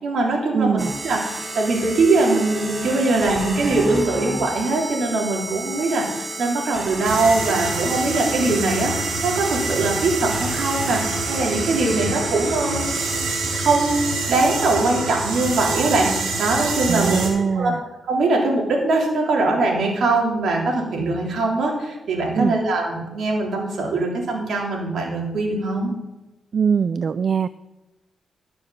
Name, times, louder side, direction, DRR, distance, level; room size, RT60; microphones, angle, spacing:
voice 1, 0.0-0.8 1.0-8.9 9.2-17.3 17.5-17.7 18.1-25.9, right 2 dB, 70° right, -1 dB, 3.4 m, -22 dB
voice 2, 0.5-0.9 16.9-17.8 22.4-22.6 26.5-27.5, right 6 dB, 50° right, 15 dB, 0.3 m, -21 dB
sound 1, 0.8-14.2, right 2 dB, 30° right, 2.0 m, -32 dB
sound 2, 7.0-17.3, right 3 dB, 90° right, 3.2 m, -26 dB
12.0 x 6.8 x 7.0 m, 1.0 s
cardioid pair, 95°, 0 cm